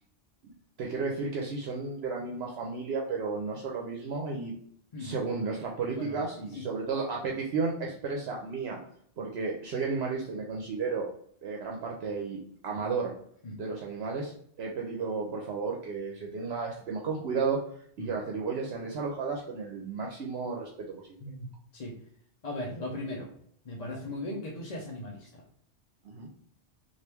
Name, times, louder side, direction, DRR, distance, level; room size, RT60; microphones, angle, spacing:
voice 1, 0.8-4.5 5.0-8.8 9.2-11.1 11.4-13.1 13.6-14.3 14.6-17.6 18.0-21.2 26.0-26.3, right 4 dB, 70° right, -1 dB, 0.8 m, -33 dB
voice 2, 22.4-23.3 23.6-25.4, left 1 dB, 45° left, -3 dB, 0.7 m, -38 dB
3.0 x 2.5 x 3.3 m, 0.63 s
omnidirectional pair, 1.2 m